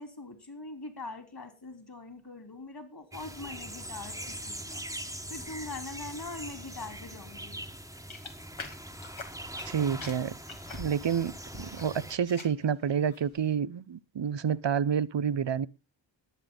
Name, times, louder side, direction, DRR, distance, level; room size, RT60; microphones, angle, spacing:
voice 1, 0.0-7.6, left 3 dB, 50° left, 3.6 m, -43 dB
sound 1, 3.1-12.2, right 1 dB, 5° right, 1.5 m, -42 dB
sound 2, 8.1-9.7 10.0-11.8 12.1-12.6 13.1-13.4, left 3 dB, 80° left, 2.3 m, -44 dB
voice 2, 9.7-10.4 10.7-15.7, right 7 dB, 65° right, 0.7 m, -29 dB
21.0 x 8.3 x 3.9 m
wide cardioid pair, 70°, 47 cm